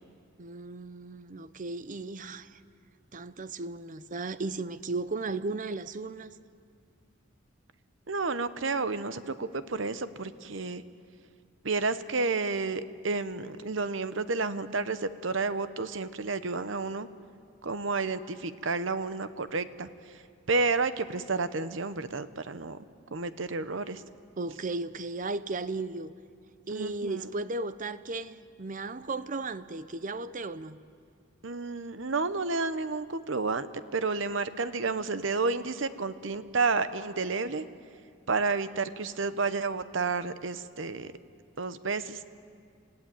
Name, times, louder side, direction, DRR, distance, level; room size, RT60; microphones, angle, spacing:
voice 1, 0.4-2.6 3.1-6.3 24.4-26.1 26.7-30.8, right 3 dB, 40° right, 0.7 m, -35 dB
voice 2, 8.1-10.8 11.6-17.1 17.6-20.2 20.5-22.8 23.1-24.0 26.7-27.3 31.4-33.7 33.9-37.6 38.3-41.1 41.6-42.2, right 4 dB, 65° right, 0.9 m, -31 dB
28.5 x 15.5 x 9.2 m
head